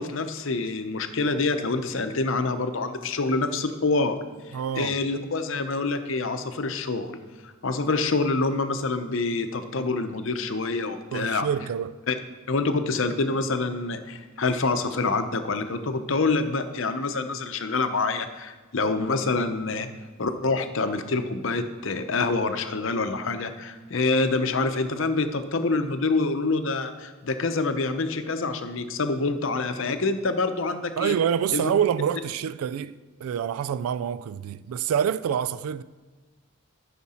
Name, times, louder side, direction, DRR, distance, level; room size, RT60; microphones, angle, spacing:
voice 1, 0.0-4.2 4.8-7.2 7.4-11.5 12.1-12.2 12.5-19.9 20.2-31.1 31.5-31.7, left 3 dB, 60° left, 0.7 m, -26 dB
voice 2, 4.5-4.9 11.1-12.0 31.0-32.9 33.2-35.8, right 8 dB, 90° right, 0.3 m, -26 dB
13.5 x 5.9 x 4.3 m
head